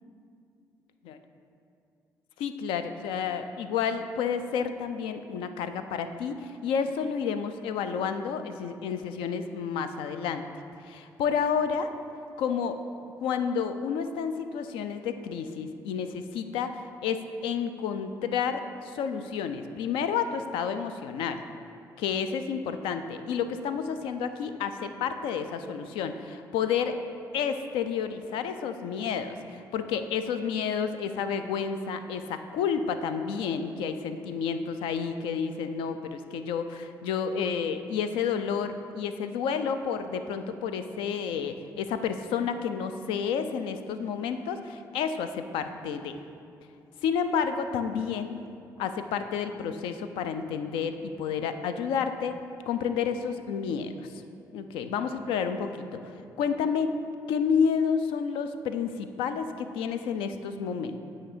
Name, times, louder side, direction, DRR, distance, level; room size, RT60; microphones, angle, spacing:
voice 1, 2.4-10.5 10.9-11.9 12.4-12.8 13.2-21.4 22.0-27.0 27.3-46.2 47.0-48.4 48.8-52.3 52.7-53.9 54.5-57.0 57.3-61.0, left 6 dB, 75° left, 9 dB, 0.3 m, -30 dB
8.4 x 2.8 x 4.9 m, 2.6 s
hypercardioid pair, 50°, 9 cm